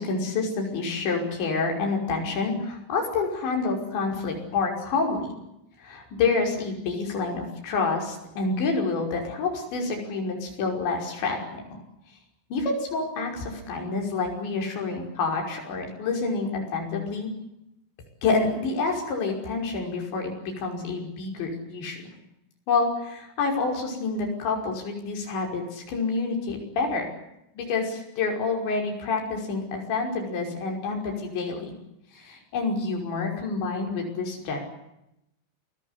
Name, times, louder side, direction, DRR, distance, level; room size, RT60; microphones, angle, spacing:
voice 1, 0.0-5.3 5.8-11.8 12.5-17.3 18.2-22.0 22.7-27.1 27.6-31.7 32.1-34.6, left 4 dB, 60° left, 1 dB, 7.8 m, -28 dB
28.5 x 19.5 x 8.2 m, 0.83 s
omnidirectional pair, 5.8 m